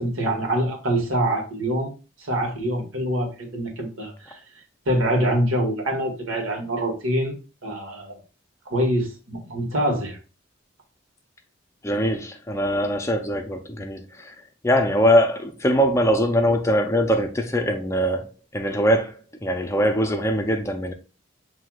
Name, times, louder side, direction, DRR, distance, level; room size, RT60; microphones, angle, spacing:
voice 1, 0.0-1.9 2.2-4.4 4.8-7.3 7.6-8.2 8.7-10.2, right 1 dB, 85° right, 1.5 m, -25 dB
voice 2, 11.8-14.3 14.6-20.9, equal, 15° left, 0.4 m, -22 dB
7.5 x 2.7 x 2.3 m
head